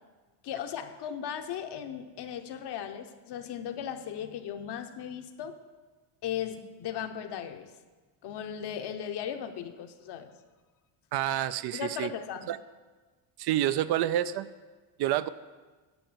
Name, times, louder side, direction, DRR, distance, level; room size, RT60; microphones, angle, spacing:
voice 1, 0.4-5.6 6.2-7.7 8.2-10.3 11.7-12.5, left 9 dB, 55° left, 7 dB, 1.0 m, -37 dB
voice 2, 11.1-12.1 12.5-12.6 13.4-14.5 15.0-15.3, right 12 dB, 55° right, 14 dB, 0.5 m, -28 dB
10.5 x 5.6 x 8.0 m, 1.3 s
cardioid pair, 115°, 48 cm